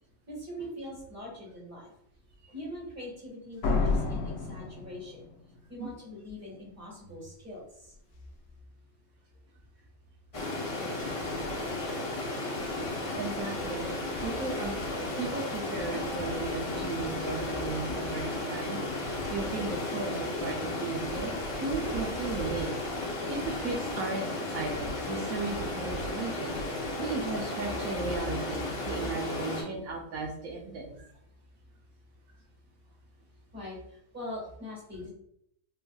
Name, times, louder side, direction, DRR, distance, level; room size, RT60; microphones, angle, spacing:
voice 1, 0.3-1.9 2.5-5.2 5.7-7.9 33.5-35.1, left 1 dB, 10° right, -5 dB, 1.4 m, -42 dB
Slam, 3.6-5.5, left 3 dB, 65° left, 0.9 m, -29 dB
Stream, 10.3-29.6, left 2 dB, 50° left, 0.4 m, -34 dB
voice 2, 13.1-13.9 14.2-14.8 15.2-26.5 27.0-31.1, right 3 dB, 75° right, -1 dB, 1.1 m, -36 dB
3.8 x 2.6 x 2.3 m, 0.71 s
omnidirectional pair, 1.5 m